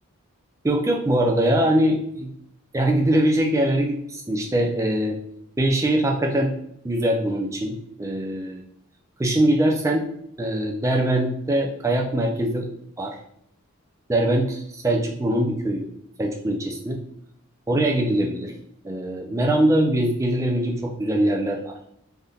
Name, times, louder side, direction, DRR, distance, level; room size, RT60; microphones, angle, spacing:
voice 1, 0.6-2.3 2.7-5.2 5.6-6.5 6.8-8.6 9.2-10.1 10.4-12.7 13.0-13.1 14.1-15.9 16.2-17.0 17.7-18.5 18.8-21.7, right 1 dB, 15° right, 1 dB, 0.3 m, -22 dB
3.5 x 2.6 x 2.3 m, 0.71 s
head